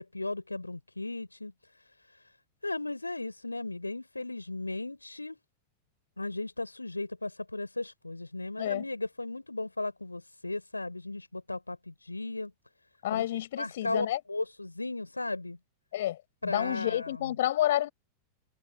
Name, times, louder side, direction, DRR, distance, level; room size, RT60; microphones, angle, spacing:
voice 1, 0.0-1.5 2.6-5.4 6.2-12.5 13.1-13.3 13.6-15.6 16.4-17.3, left 2 dB, 85° left, 3.7 m, -36 dB
voice 2, 13.0-14.2 15.9-17.9, left 13 dB, 55° left, 6.2 m, -30 dB
figure-of-eight pair, 90°, 0 cm